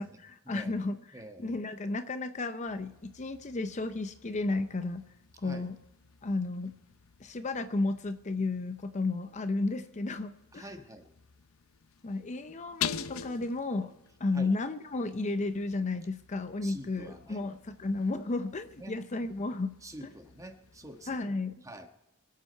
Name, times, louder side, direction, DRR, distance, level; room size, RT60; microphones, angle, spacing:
voice 1, 0.0-5.0 5.4-5.8 6.2-6.8 7.2-10.7 12.0-13.9 14.2-19.8 20.0-20.1 21.1-21.6, left 3 dB, 35° left, 10 dB, 0.6 m, -33 dB
voice 2, 1.1-1.5 5.4-5.7 10.5-11.1 14.3-14.5 16.6-17.4 18.8-19.0 19.8-21.9, right 1 dB, 15° right, 6 dB, 1.3 m, -46 dB
sound 1, 2.7-21.2, left 8 dB, 75° left, 0.6 m, -46 dB
24.5 x 8.4 x 4.5 m, 0.96 s
head